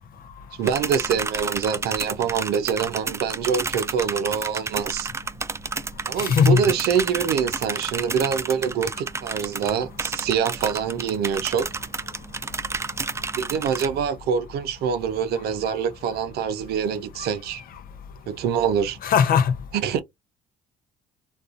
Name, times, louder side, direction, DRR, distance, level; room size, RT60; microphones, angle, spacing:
sound 1, 0.6-13.9, right 4 dB, 15° right, 0.3 m, -31 dB
voice 1, 0.6-5.1 6.1-11.7 13.4-17.6 18.3-19.0 19.7-20.0, right 7 dB, 65° right, 0.6 m, -25 dB
voice 2, 6.2-6.6 19.0-19.5, left 7 dB, 55° left, 0.7 m, -18 dB
2.4 x 2.4 x 2.4 m
hypercardioid pair, 60°, 17 cm